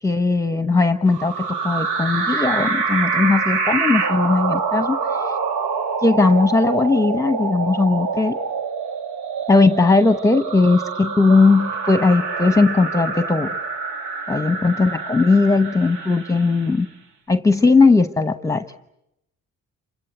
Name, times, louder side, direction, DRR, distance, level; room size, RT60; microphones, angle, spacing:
voice 1, 0.0-5.3 6.0-8.4 9.5-13.5 14.3-16.9 17.3-18.6, left 3 dB, 10° left, 10 dB, 0.9 m, -18 dB
sound 1, 1.1-16.7, right 5 dB, 85° right, 2.1 m, -26 dB
27.5 x 24.0 x 7.9 m, 0.84 s
cardioid pair, 90°, 30 cm